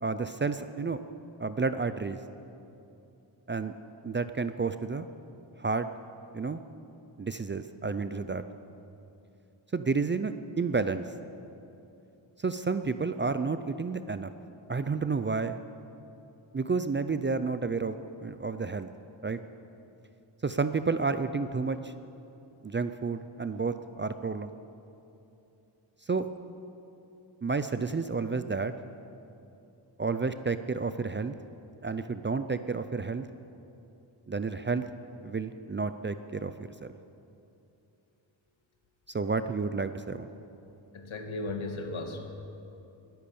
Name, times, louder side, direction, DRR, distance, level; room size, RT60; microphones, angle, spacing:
voice 1, 0.0-1.0 1.4-2.2 3.5-3.7 4.0-5.1 5.6-5.9 6.3-6.6 7.2-8.4 9.7-11.1 12.4-14.3 14.7-15.6 16.5-17.9 18.2-18.9 19.2-19.4 20.4-21.9 22.6-24.5 26.1-26.3 27.4-28.7 30.0-31.4 31.8-33.3 34.3-34.8 35.2-36.5 36.8-36.9 39.1-40.3, right 4 dB, 25° right, 11 dB, 0.4 m, -30 dB
voice 2, 41.1-42.2, left 2 dB, 75° left, 4 dB, 2.0 m, -35 dB
20.0 x 10.5 x 7.0 m, 2.8 s
wide cardioid pair, 140°, 47 cm